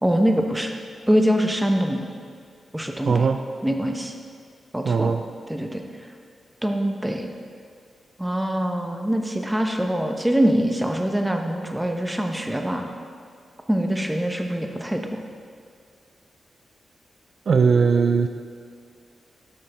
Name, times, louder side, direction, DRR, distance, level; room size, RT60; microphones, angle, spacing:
voice 1, 0.0-0.7 1.1-2.0 2.7-3.3 3.6-4.1 4.7-5.1 5.5-5.8 6.6-7.3 8.2-12.9 13.7-15.2, equal, 10° right, 3 dB, 1.0 m, -23 dB
voice 2, 3.0-3.4 4.8-5.2 17.5-18.3, right 5 dB, 65° right, 7 dB, 0.3 m, -19 dB
10.0 x 6.3 x 3.5 m, 2.2 s
supercardioid pair, 40°, 0 cm